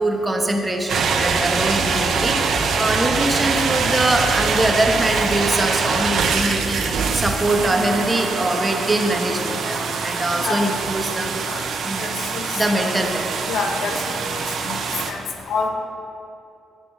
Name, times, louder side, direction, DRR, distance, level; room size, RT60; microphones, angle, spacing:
voice 1, 0.0-11.3 11.8-12.1 12.5-13.3, right 1 dB, 20° right, 3 dB, 1.1 m, -23 dB
sound 1, 0.9-15.1, right 5 dB, 65° right, 0.7 m, -23 dB
voice 2, 10.4-10.7 11.5-11.6 12.0-12.5 12.8-12.9 13.5-14.0 14.7-14.8 15.1-15.2 15.5-15.7, left 4 dB, 70° left, 3 dB, 1.0 m, -26 dB
8.8 x 6.1 x 5.1 m, 2.7 s
supercardioid pair, 65°, 0 cm